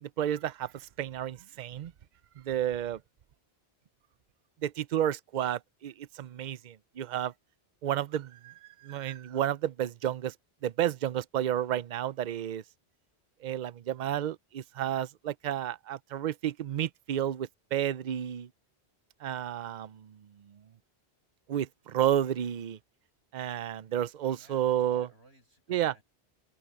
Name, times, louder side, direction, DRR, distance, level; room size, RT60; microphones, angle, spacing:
voice 1, 0.0-1.9 2.4-3.0 4.6-7.3 7.8-10.3 10.6-12.6 13.4-18.5 19.2-20.2 20.5-20.6 21.5-22.8 23.3-25.1 25.7-26.0, right 11 dB, 50° right, 0.6 m, -31 dB
voice 2, 24.3-26.0, right 1 dB, 85° right, 8.5 m, -60 dB
omnidirectional pair, 1.1 m